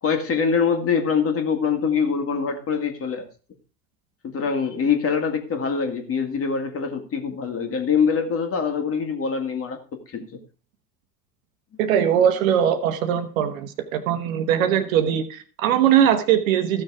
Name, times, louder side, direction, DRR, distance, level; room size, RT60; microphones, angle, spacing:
voice 1, 0.0-3.3 4.2-9.8 10.1-10.3, left 6 dB, 30° left, 5 dB, 2.2 m, -24 dB
voice 2, 11.8-16.8, right 9 dB, 55° right, 8 dB, 1.3 m, -21 dB
14.5 x 6.4 x 4.8 m, 0.38 s
figure-of-eight pair, 80°, 48 cm